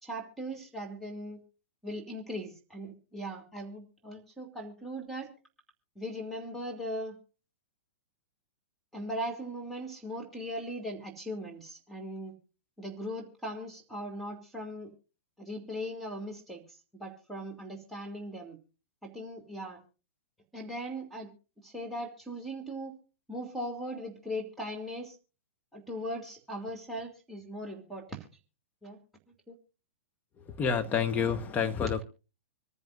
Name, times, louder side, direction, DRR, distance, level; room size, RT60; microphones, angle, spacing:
voice 1, 0.0-1.4 1.8-5.3 5.9-7.2 8.9-12.3 12.8-14.9 15.4-18.6 19.0-19.8 20.5-21.3 21.6-22.9 23.3-25.2 25.7-28.3 28.8-29.0 29.3-29.6, equal, ahead, 2.9 m, -39 dB
voice 2, 30.4-32.0, left 6 dB, 25° left, 1.4 m, -29 dB
25.5 x 10.5 x 2.7 m
hypercardioid pair, 110°, 7 cm